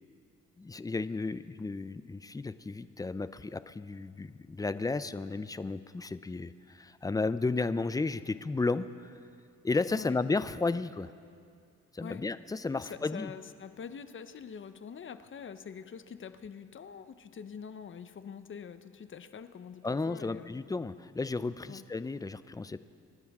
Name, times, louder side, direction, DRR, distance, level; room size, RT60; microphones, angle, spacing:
voice 1, 0.6-9.1 9.6-11.1 11.9-13.3 19.8-22.8, left 3 dB, 10° left, 14 dB, 0.5 m, -33 dB
voice 2, 12.7-20.6 21.6-21.8, left 7 dB, 40° left, 11 dB, 0.9 m, -45 dB
27.5 x 12.0 x 3.6 m, 2.4 s
cardioid pair, 90°, 30 cm